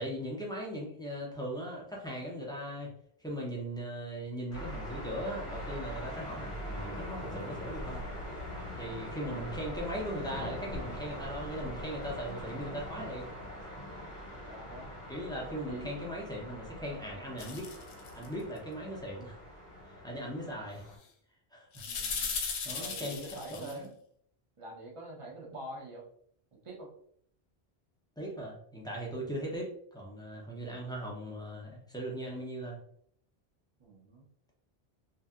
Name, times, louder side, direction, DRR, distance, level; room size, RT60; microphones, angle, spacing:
voice 1, 0.0-2.9 3.2-8.0 8.8-13.2 15.1-17.7 18.1-19.4 19.9-20.9 21.5-21.8 22.6-23.2 23.5-23.9 28.2-32.8, equal, 5° left, -4 dB, 0.4 m, -39 dB
sound 1, 4.5-21.0, left 1 dB, 50° left, 1.0 m, -42 dB
voice 2, 9.1-9.4 12.3-12.5 14.0-14.1 14.5-15.0 15.3-16.0 20.6-20.7 21.9-22.3 22.8-23.9 24.6-26.1 26.5-26.9 33.8-34.3, right 2 dB, 35° right, -2 dB, 0.6 m, -46 dB
sound 2, 17.4-18.3 21.7-23.7, left 5 dB, 85° left, 0.8 m, -37 dB
2.7 x 2.6 x 2.3 m, 0.64 s
omnidirectional pair, 1.1 m